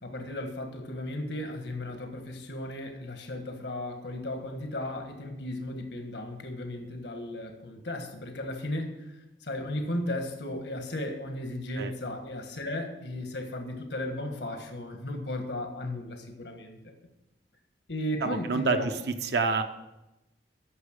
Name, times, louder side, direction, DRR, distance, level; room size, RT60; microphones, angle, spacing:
voice 1, 0.0-16.9 17.9-18.9, left 1 dB, 75° left, 4 dB, 1.4 m, -35 dB
voice 2, 18.2-18.8 19.2-19.6, right 4 dB, 65° right, 6 dB, 0.6 m, -27 dB
9.6 x 6.6 x 6.4 m, 0.96 s
head